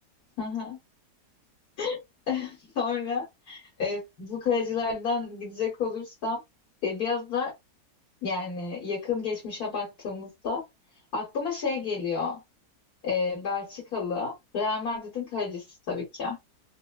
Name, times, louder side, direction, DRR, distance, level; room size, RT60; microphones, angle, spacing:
voice 1, 0.4-0.8 1.8-2.0 2.3-6.4 6.8-7.5 8.2-10.6 11.1-12.4 13.0-16.4, left 5 dB, 60° left, 1.8 m, -30 dB
4.0 x 2.1 x 2.3 m
omnidirectional pair, 1.9 m